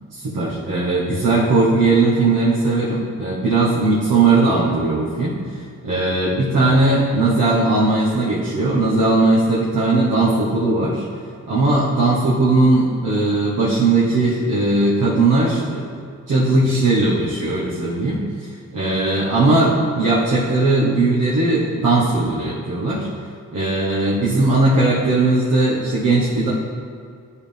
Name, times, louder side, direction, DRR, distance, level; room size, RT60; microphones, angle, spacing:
voice 1, 0.1-5.4 5.8-11.0 11.5-18.2 18.7-23.1 23.5-26.5, right 2 dB, 75° right, -7 dB, 1.3 m, -18 dB
11.0 x 4.8 x 3.5 m, 2.2 s
wide cardioid pair, 130°, 32 cm